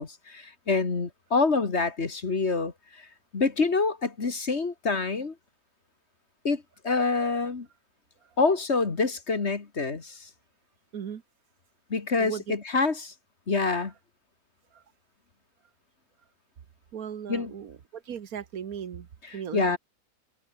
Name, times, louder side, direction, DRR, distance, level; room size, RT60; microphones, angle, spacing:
voice 1, 0.0-3.1 3.3-5.4 6.4-7.7 8.4-10.3 11.9-13.1 13.5-13.9 17.3-17.5 19.2-19.8, left 4 dB, 40° left, 2.0 m, -27 dB
voice 2, 12.2-12.5 14.7-14.8 16.9-19.1 19.3-19.8, right 8 dB, 65° right, 1.7 m, -37 dB
omnidirectional pair, 1.7 m